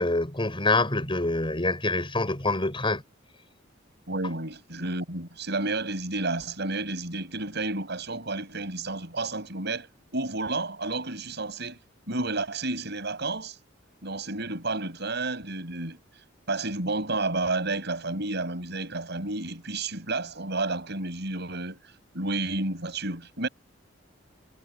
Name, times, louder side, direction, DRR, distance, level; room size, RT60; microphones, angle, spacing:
voice 1, 0.0-3.0, left 2 dB, 25° left, 7.1 m, -26 dB
voice 2, 4.1-11.8 12.1-13.6 14.0-23.5, right 2 dB, 60° right, 7.6 m, -31 dB
head